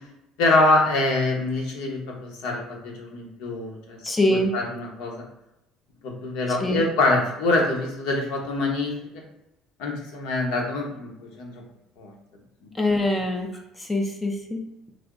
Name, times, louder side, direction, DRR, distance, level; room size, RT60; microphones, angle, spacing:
voice 1, 0.4-4.0 4.3-5.2 6.0-8.9 9.8-11.6 12.0-12.1, left 2 dB, 80° left, 0 dB, 1.0 m, -25 dB
voice 2, 4.0-4.5 6.6-6.8 12.8-13.5 13.8-14.7, left 1 dB, 10° left, 3 dB, 0.4 m, -23 dB
3.4 x 2.0 x 3.7 m, 0.86 s
cardioid pair, 165°, 0 cm